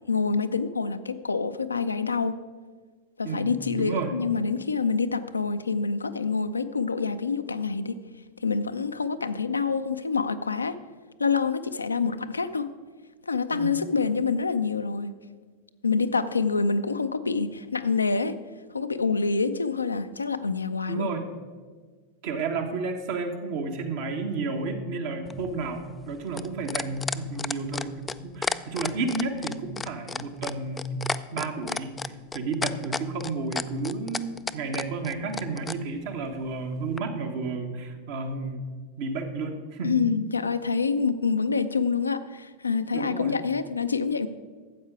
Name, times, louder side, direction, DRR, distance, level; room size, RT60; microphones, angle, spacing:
voice 1, 0.1-2.4 3.2-8.0 8.4-10.8 11.2-12.7 13.3-15.1 15.8-18.4 18.7-21.1 39.8-44.3, left 5 dB, 80° left, 10 dB, 0.5 m, -26 dB
voice 2, 3.2-4.1 13.5-13.8 20.9-21.3 22.2-32.0 32.3-38.6 39.0-40.0 42.9-43.4, right 3 dB, 50° right, 5 dB, 1.3 m, -32 dB
sound 1, 25.3-35.8 37.0-37.1, left 4 dB, 15° left, 0.3 m, -31 dB
13.0 x 8.0 x 4.7 m, 1.5 s
figure-of-eight pair, 90°, 0 cm